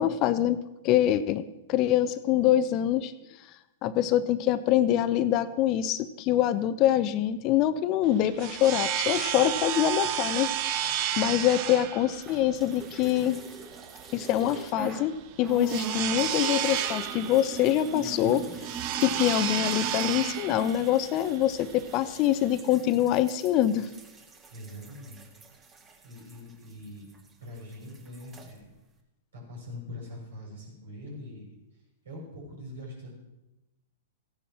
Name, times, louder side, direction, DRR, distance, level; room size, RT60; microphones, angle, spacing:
voice 1, 0.0-3.1 3.8-10.5 10.8-13.4 14.1-18.4 19.0-23.9, left 12 dB, 35° left, 14 dB, 0.7 m, -25 dB
sound 1, 8.0-22.6, right 10 dB, 40° right, 1.0 m, -32 dB
sound 2, 12.2-15.1 15.4-27.3 27.6-28.5, right 5 dB, 20° right, 1.9 m, -42 dB
voice 2, 18.0-18.6 24.5-25.3 25.6-27.1 27.4-28.6 29.3-31.4 31.7-33.1, left 1 dB, 70° right, -2 dB, 6.7 m, -43 dB
16.0 x 10.0 x 6.0 m, 0.98 s
figure-of-eight pair, 105°, 0 cm